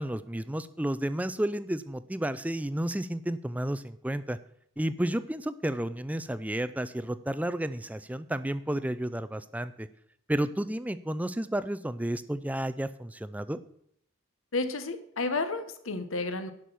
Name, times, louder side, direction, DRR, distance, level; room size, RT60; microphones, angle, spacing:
voice 1, 0.0-4.4 4.8-9.9 10.3-13.6, right 1 dB, 5° right, 13 dB, 0.4 m, -32 dB
voice 2, 14.5-16.5, left 3 dB, 75° left, 10 dB, 1.2 m, -31 dB
11.0 x 6.0 x 6.9 m, 0.71 s
head